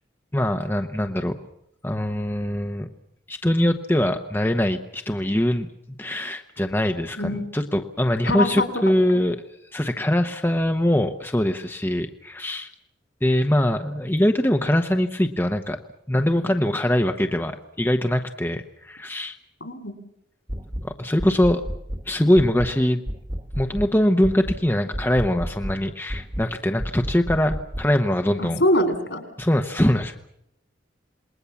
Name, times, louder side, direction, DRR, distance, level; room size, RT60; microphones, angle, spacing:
voice 1, 0.3-1.3 1.8-2.9 3.3-5.7 6.0-9.4 9.7-12.7 13.2-15.8 16.1-19.4 20.8-21.6 22.1-23.0 23.6-28.6 29.4-30.3, left 1 dB, 10° left, 6 dB, 1.0 m, -22 dB
voice 2, 7.2-7.5 8.2-8.6 19.6-19.9 28.4-29.2, left 1 dB, 70° left, 9 dB, 4.3 m, -23 dB
sound 1, 20.5-20.9 21.2-22.1 22.4-22.8 23.1-23.9 24.2-24.6 24.9-25.8 26.1-26.5 26.8-27.9, equal, 25° right, 1.6 m, -31 dB
27.5 x 21.0 x 7.2 m, 0.76 s
head